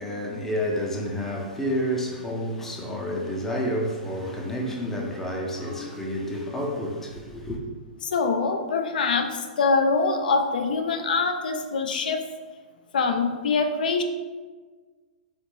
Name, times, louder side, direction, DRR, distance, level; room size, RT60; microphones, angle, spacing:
voice 1, 0.0-7.6, equal, 5° left, 0.5 m, -29 dB
voice 2, 8.0-12.2 12.9-14.0, left 4 dB, 75° left, 0.4 m, -24 dB
3.5 x 2.2 x 3.1 m
hypercardioid pair, 135°, 5 cm